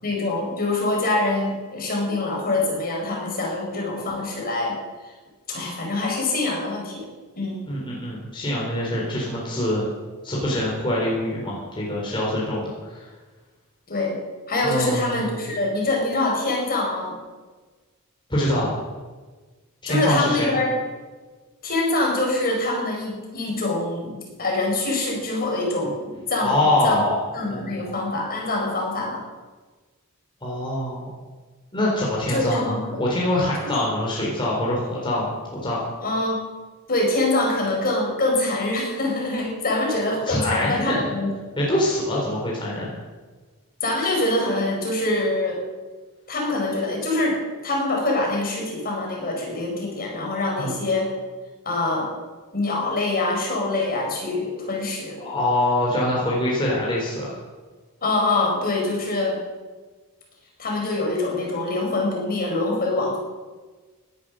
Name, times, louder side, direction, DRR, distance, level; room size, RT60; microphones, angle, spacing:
voice 1, 0.0-4.8 5.5-7.0 7.3-7.7 13.9-14.2 14.5-17.1 19.9-20.8 21.6-25.9 26.3-27.0 27.3-29.2 32.3-33.0 33.6-33.7 36.0-36.4 36.9-41.3 43.8-45.6 46.3-47.4 47.6-51.1 51.6-52.1 52.5-55.2 58.0-59.4 60.6-63.2, left 2 dB, 40° left, -2 dB, 5.1 m, -24 dB
voice 2, 7.7-9.9 10.2-13.1 14.6-15.2 18.3-18.7 19.8-20.5 26.4-27.2 27.5-27.9 30.4-31.1 31.7-35.8 40.3-41.1 41.6-42.9 50.6-50.7 55.2-57.3, left 1 dB, 20° left, -4 dB, 3.9 m, -24 dB
17.5 x 11.0 x 6.4 m, 1.3 s
head